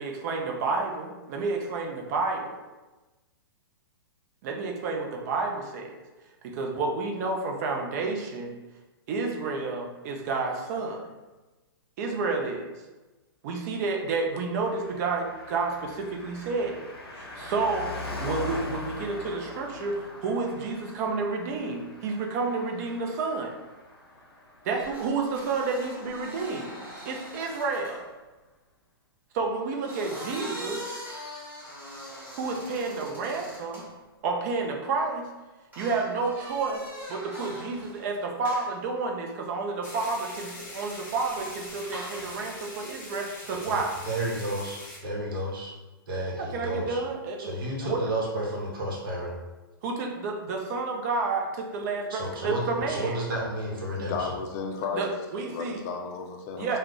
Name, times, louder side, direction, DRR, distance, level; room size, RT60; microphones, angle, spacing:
voice 1, 0.0-2.6 4.4-6.0 6.4-8.5 9.1-11.1 12.0-12.7 13.4-16.8 17.1-23.5 24.6-26.7 27.1-28.1 29.3-30.8 32.4-33.8 34.2-35.3 35.8-36.8 37.1-43.9 46.4-47.4 47.8-48.0 49.8-53.2 54.9-55.8 56.6-56.8, right 4 dB, 45° right, 1 dB, 0.4 m, -30 dB
Car passing by, 14.5-26.4 26.6-26.7, left 2 dB, 85° left, 0.6 m, -41 dB
sound 1, 24.7-28.0 29.6-33.9 35.7-38.1 38.4-38.8 41.2-42.4, equal, 15° right, 1.1 m, -42 dB
sound 2, 39.8-45.0, left 1 dB, 15° left, 0.8 m, -43 dB
voice 2, 43.7-45.7 46.1-47.0 47.4-49.4 52.1-54.3, right 1 dB, 65° right, -3 dB, 0.9 m, -32 dB
voice 3, 53.9-55.1 55.5-56.8, left 5 dB, 40° left, 3 dB, 0.4 m, -33 dB
2.3 x 2.1 x 3.7 m, 1.2 s
hypercardioid pair, 120°, 13 cm